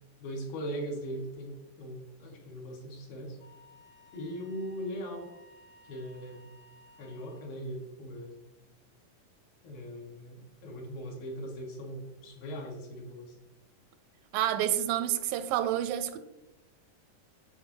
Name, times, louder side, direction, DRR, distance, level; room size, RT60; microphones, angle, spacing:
voice 1, 0.2-3.4 4.1-5.3 5.8-6.4 7.0-8.4 9.6-13.4, equal, 80° left, 3.5 m, -40 dB
Wind instrument woodwind instrument, 3.4-7.6, equal, 65° left, 1.2 m, -58 dB
voice 2, 14.3-16.2, right 12 dB, 85° right, 2.3 m, -29 dB
9.3 x 7.5 x 2.8 m
omnidirectional pair, 4.0 m